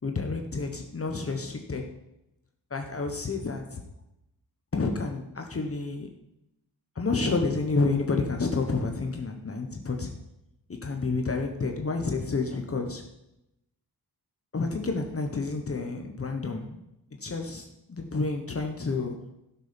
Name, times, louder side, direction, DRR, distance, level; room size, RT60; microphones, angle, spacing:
voice 1, 0.0-1.8 2.7-3.8 4.7-6.1 6.9-10.1 10.8-13.0 14.5-16.8 17.2-19.1, left 3 dB, 35° left, 3 dB, 1.3 m, -29 dB
16.0 x 6.9 x 5.3 m, 0.87 s
wide cardioid pair, 175°, 40 cm